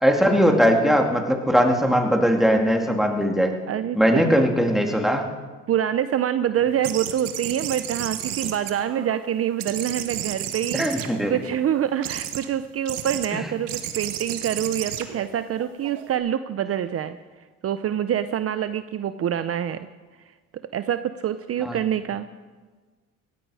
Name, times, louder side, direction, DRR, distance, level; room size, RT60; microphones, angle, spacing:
voice 1, 0.0-3.5 3.9-5.2 10.7-11.3 13.3-13.4 21.6-21.8, equal, ahead, 2 dB, 2.3 m, -20 dB
voice 2, 3.7-4.4 5.7-17.2 17.6-19.9 20.5-22.3, right 10 dB, 45° right, 12 dB, 0.6 m, -26 dB
sound 1, 6.8-9.3 9.6-11.5 12.0-12.5 12.9-13.3 13.7-16.2, right 11 dB, 85° right, 1.3 m, -32 dB
18.0 x 14.5 x 4.9 m, 1.4 s
cardioid pair, 95°, 32 cm